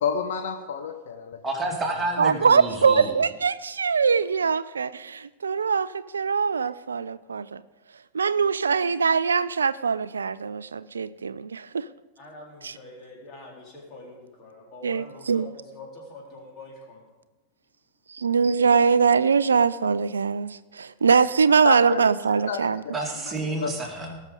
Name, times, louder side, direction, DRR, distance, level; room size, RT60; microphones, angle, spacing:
voice 1, 0.0-1.4 21.1-21.2 21.6-22.0 22.5-22.9 23.5-23.7, left 6 dB, 60° left, 5 dB, 0.9 m, -29 dB
voice 2, 1.4-3.2 22.9-24.2, right 2 dB, 15° right, 0 dB, 2.3 m, -30 dB
voice 3, 2.2-7.6 8.1-11.8 12.6-12.8 14.8-15.5 18.1-22.8, right 5 dB, 70° right, 16 dB, 0.3 m, -22 dB
voice 4, 12.2-17.0 19.8-19.9 22.3-22.4, left 2 dB, 30° left, -2 dB, 3.9 m, -45 dB
19.0 x 6.4 x 5.1 m, 1.1 s
figure-of-eight pair, 90°, 0 cm